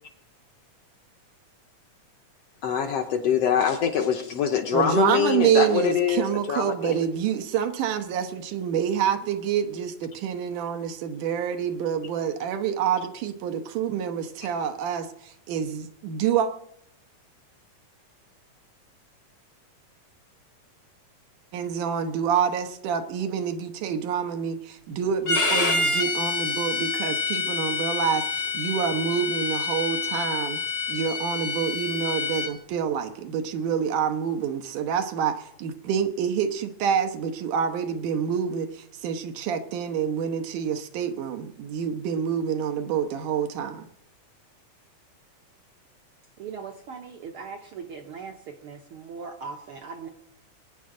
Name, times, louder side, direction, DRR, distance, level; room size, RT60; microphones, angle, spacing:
voice 1, 2.6-7.0, left 8 dB, 70° left, 5 dB, 1.5 m, -24 dB
voice 2, 4.7-16.5 21.5-30.6 30.9-43.9, right 8 dB, 90° right, 7 dB, 2.6 m, -27 dB
Bowed string instrument, 25.2-32.5, left 4 dB, 50° left, 0.7 m, -27 dB
voice 3, 46.4-50.1, right 5 dB, 70° right, 3 dB, 1.3 m, -39 dB
22.0 x 9.5 x 3.8 m, 0.73 s
omnidirectional pair, 3.5 m